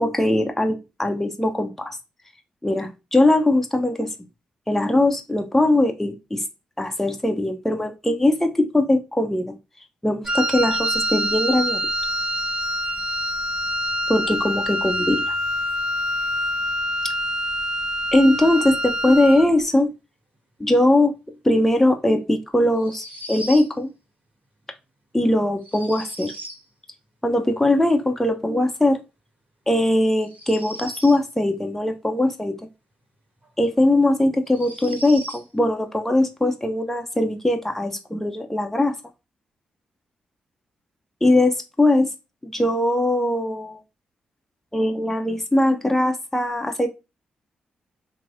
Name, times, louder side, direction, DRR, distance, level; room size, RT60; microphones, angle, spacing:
voice 1, 0.0-2.0 2.6-4.1 4.7-6.4 6.8-9.6 10.0-11.8 14.1-15.3 18.1-20.0 20.6-21.1 21.4-23.9 25.1-26.3 27.2-29.0 29.7-32.5 33.6-38.9 41.2-42.1 42.4-43.8 44.7-46.9, left 1 dB, 10° left, 0.6 m, -20 dB
Wind instrument woodwind instrument, 10.2-19.5, equal, 30° right, 0.7 m, -25 dB
sound 1, 22.8-23.7 25.6-26.6 30.2-31.3 33.4-33.5 34.5-35.5, equal, 45° right, 1.9 m, -38 dB
3.0 x 2.6 x 2.5 m
hypercardioid pair, 40°, 4 cm